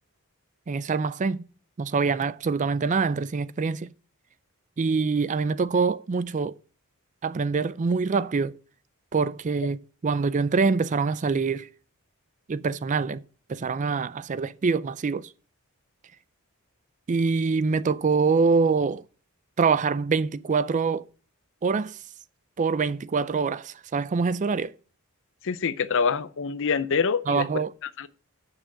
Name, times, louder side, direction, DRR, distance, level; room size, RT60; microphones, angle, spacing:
voice 1, 0.7-1.5 1.8-3.9 4.8-6.6 7.2-8.5 9.1-11.7 12.5-13.2 13.5-15.3 17.1-19.0 19.6-21.0 21.6-22.0 22.6-24.7 27.3-27.7, right 4 dB, 35° right, 0.4 m, -25 dB
voice 2, 25.4-28.1, left 5 dB, 60° left, 0.6 m, -26 dB
7.4 x 6.3 x 7.4 m
head